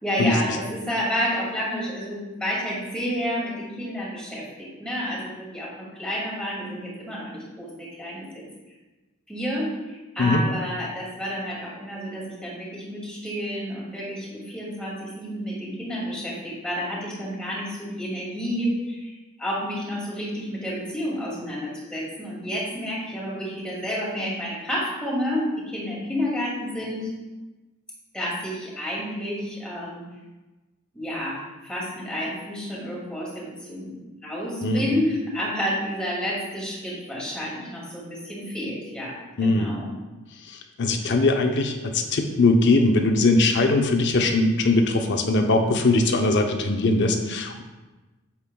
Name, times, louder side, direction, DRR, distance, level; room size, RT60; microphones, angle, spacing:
voice 1, 0.0-8.4 9.3-27.1 28.1-30.0 30.9-34.0 34.2-39.9, equal, 5° left, -6 dB, 2.3 m, -30 dB
voice 2, 34.6-35.0 39.4-39.8 40.5-47.6, left 2 dB, 55° left, 4 dB, 0.6 m, -21 dB
8.2 x 7.3 x 2.3 m, 1.2 s
head